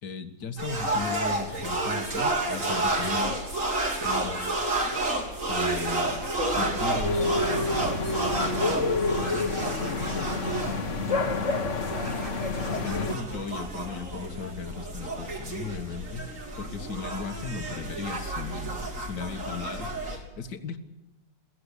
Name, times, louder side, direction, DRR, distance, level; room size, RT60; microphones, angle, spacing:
voice 1, 0.0-3.6 4.0-4.6 5.5-6.3 6.6-7.3 12.7-16.3 16.6-20.8, left 5 dB, 65° left, 8 dB, 2.2 m, -36 dB
sound 1, 0.6-20.2, right 2 dB, 45° right, 3.8 m, -31 dB
voice 2, 6.4-6.7 7.2-11.6, equal, 85° right, 1 dB, 4.9 m, -40 dB
sound 2, 7.0-13.1, left 3 dB, 45° left, 1.8 m, -28 dB
22.5 x 16.5 x 8.4 m, 1.0 s
omnidirectional pair, 2.0 m